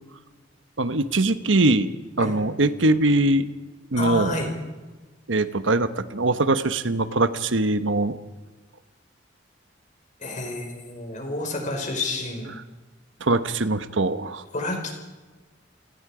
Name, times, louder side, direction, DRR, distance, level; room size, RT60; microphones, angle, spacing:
voice 1, 0.8-1.9 2.2-3.5 3.9-4.4 5.3-8.2 13.2-14.4, right 2 dB, 85° right, 11 dB, 1.1 m, -22 dB
voice 2, 4.0-4.5 10.2-12.5 14.5-15.0, left 2 dB, 40° left, 3 dB, 5.2 m, -29 dB
29.0 x 18.0 x 5.0 m, 1.3 s
head